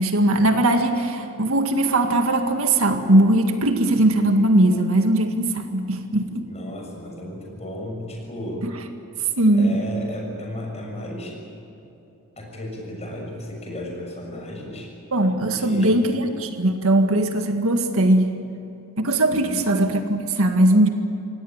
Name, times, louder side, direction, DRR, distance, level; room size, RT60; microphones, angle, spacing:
voice 1, 0.0-6.5 8.6-8.7 9.4-9.8 15.1-18.4 19.0-20.9, right 1 dB, 65° right, 5 dB, 2.0 m, -19 dB
voice 2, 6.4-8.6 9.5-11.4 12.4-14.9 15.5-16.1 19.4-19.8, left 1 dB, 30° left, 0 dB, 7.0 m, -34 dB
26.5 x 18.0 x 8.9 m, 2.9 s
head